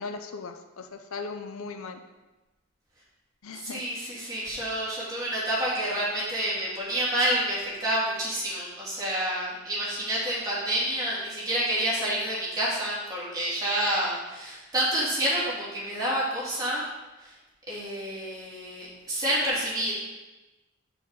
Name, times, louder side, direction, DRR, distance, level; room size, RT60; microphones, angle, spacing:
voice 1, 0.0-2.0 3.4-3.8, left 4 dB, 75° left, 7 dB, 0.6 m, -38 dB
voice 2, 3.5-16.8 17.2-17.3 17.7-19.9, right 1 dB, 20° right, -8 dB, 2.9 m, -28 dB
6.3 x 4.9 x 6.8 m, 1.1 s
head